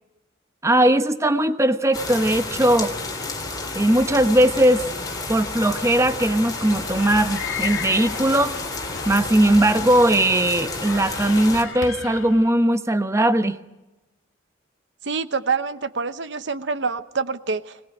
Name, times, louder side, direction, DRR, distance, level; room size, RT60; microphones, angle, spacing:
voice 1, 0.6-2.9 3.7-4.8 5.3-8.6 9.1-13.6, right 1 dB, 15° right, 8 dB, 1.0 m, -19 dB
sound 1, 1.9-11.6, left 3 dB, 20° left, 3.6 m, -31 dB
sound 2, 7.0-12.5, left 7 dB, 85° left, 2.0 m, -36 dB
voice 2, 15.0-17.8, right 5 dB, 65° right, 12 dB, 1.0 m, -26 dB
22.5 x 19.5 x 9.2 m, 1.0 s
head